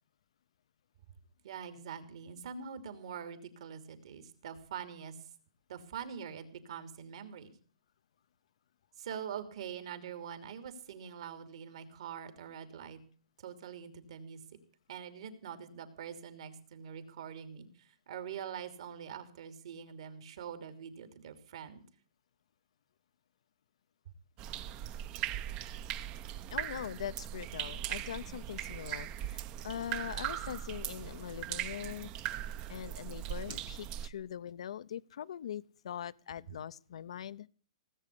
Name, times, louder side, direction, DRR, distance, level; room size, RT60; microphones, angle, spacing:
voice 1, 1.4-5.3 5.7-7.6 9.0-13.0 13.4-14.4 14.9-21.8, right 7 dB, 60° right, 2.9 m, -44 dB
sound 1, 24.4-34.1, right 11 dB, 25° right, 0.7 m, -39 dB
voice 2, 26.5-32.1 32.7-37.5, left 10 dB, 65° left, 0.6 m, -42 dB
18.5 x 8.3 x 8.4 m
hypercardioid pair, 160°, 3 cm